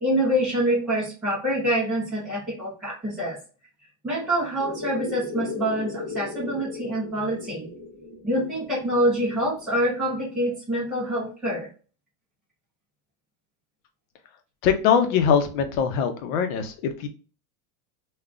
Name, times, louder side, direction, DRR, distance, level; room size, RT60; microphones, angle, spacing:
voice 1, 0.0-3.4 4.0-7.7 8.2-11.7, equal, ahead, -10 dB, 0.3 m, -26 dB
sound 1, 4.6-9.7, left 3 dB, 20° right, 0.9 m, -37 dB
voice 2, 14.6-17.1, left 7 dB, 60° left, 7 dB, 0.7 m, -22 dB
3.7 x 2.3 x 2.4 m, 0.36 s
supercardioid pair, 170°, 48 cm